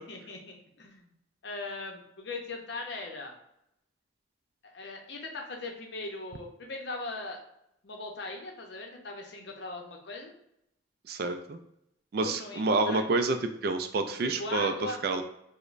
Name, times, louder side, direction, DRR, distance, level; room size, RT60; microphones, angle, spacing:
voice 1, 0.1-1.1 1.4-3.3 4.6-7.4 7.8-10.3 12.2-13.0 14.2-15.0, left 2 dB, 60° left, 2 dB, 0.6 m, -39 dB
voice 2, 11.1-11.6 12.1-15.2, right 3 dB, 50° right, 7 dB, 0.3 m, -28 dB
4.9 x 2.1 x 2.5 m, 0.79 s
head